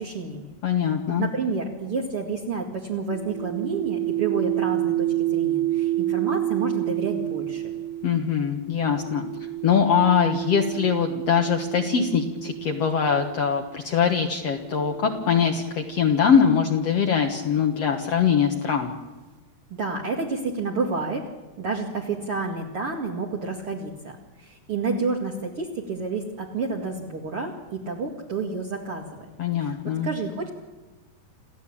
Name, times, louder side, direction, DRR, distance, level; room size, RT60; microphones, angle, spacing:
voice 1, 0.0-0.5 0.8-7.7 19.7-21.3 21.6-29.2 29.6-30.5, right 4 dB, 45° right, -1 dB, 2.8 m, -30 dB
voice 2, 0.6-1.3 8.0-9.3 9.6-18.9 29.4-30.1, left 7 dB, 55° left, 3 dB, 2.2 m, -22 dB
sound 1, 3.1-13.5 14.4-18.1, right 15 dB, 65° right, 2.7 m, -30 dB
28.5 x 15.5 x 8.7 m, 1.2 s
omnidirectional pair, 3.7 m